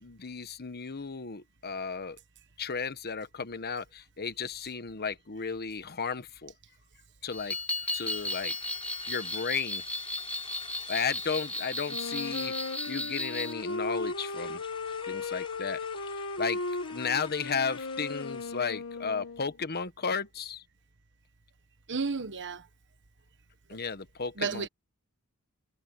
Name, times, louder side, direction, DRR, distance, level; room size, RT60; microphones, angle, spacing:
voice 1, 0.0-2.2 2.6-6.5 7.2-7.6 7.9-8.6 9.1-9.8 10.9-12.5 12.9-14.6 15.1-15.8 16.1-16.6 16.9-20.6 23.7-24.7, left 5 dB, 45° left, 1.2 m, -34 dB
sound 1, 7.3-13.5, left 1 dB, 5° left, 1.9 m, -35 dB
sound 2, 7.7-18.6, left 4 dB, 25° left, 4.2 m, -50 dB
Wind instrument woodwind instrument, 11.9-19.6, left 3 dB, 65° left, 1.4 m, -36 dB
voice 2, 21.9-22.7 24.4-24.7, right 5 dB, 55° right, 1.3 m, -32 dB
head